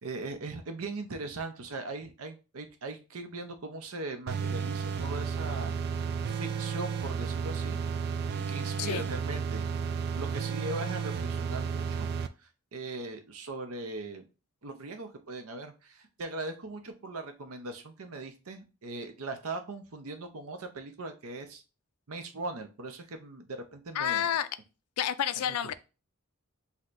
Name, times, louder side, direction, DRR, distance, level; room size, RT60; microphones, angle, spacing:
voice 1, 0.0-5.7 6.3-7.8 8.3-9.7 10.1-12.1 12.4-14.2 14.6-21.6 22.1-24.3, right 2 dB, 70° right, 0.7 m, -40 dB
sound 1, 4.3-12.3, right 6 dB, 45° right, 0.3 m, -32 dB
voice 2, 23.9-24.5 25.0-25.7, left 10 dB, 80° left, 0.4 m, -29 dB
6.2 x 2.8 x 2.5 m
head